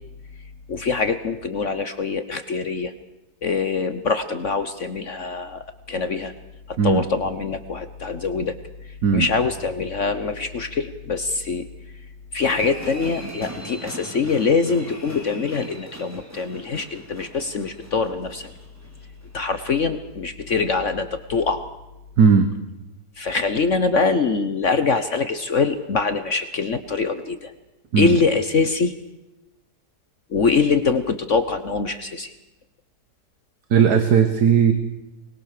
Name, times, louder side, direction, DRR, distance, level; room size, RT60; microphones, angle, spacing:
voice 1, 0.7-2.9 3.4-5.6 5.9-6.3 6.8-8.6 9.1-11.6 12.3-18.5 19.3-21.7 23.2-27.5 28.0-28.9 30.3-32.3, left 4 dB, 50° left, 10 dB, 1.3 m, -23 dB
sound 1, 12.5-19.7 20.1-20.2, equal, 10° right, 4.1 m, -39 dB
voice 2, 33.7-34.7, right 6 dB, 70° right, 8 dB, 1.8 m, -16 dB
24.5 x 21.0 x 6.7 m, 0.98 s
omnidirectional pair, 1.8 m